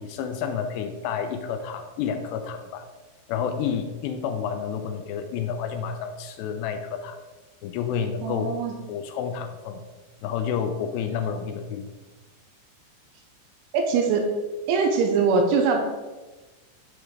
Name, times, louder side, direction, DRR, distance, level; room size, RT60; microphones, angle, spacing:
voice 1, 0.0-2.9 3.3-7.2 7.6-8.5 8.9-9.8 10.2-11.9, left 7 dB, 85° left, 6 dB, 2.5 m, -30 dB
voice 2, 8.2-8.7 13.7-14.3 14.7-15.9, right 4 dB, 80° right, 3 dB, 3.3 m, -22 dB
8.4 x 5.1 x 4.6 m, 1.2 s
omnidirectional pair, 5.4 m